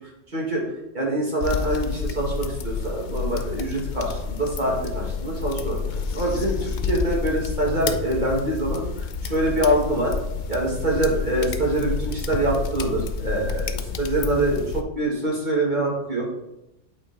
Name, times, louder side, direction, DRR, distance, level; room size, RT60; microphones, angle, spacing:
voice 1, 0.3-0.6 0.9-5.8 6.1-10.2 10.5-16.2, right 1 dB, 40° right, -3 dB, 2.0 m, -25 dB
sound 1, 1.4-14.8, left 5 dB, 55° left, 0.5 m, -29 dB
8.4 x 4.4 x 4.1 m, 0.89 s
omnidirectional pair, 1.2 m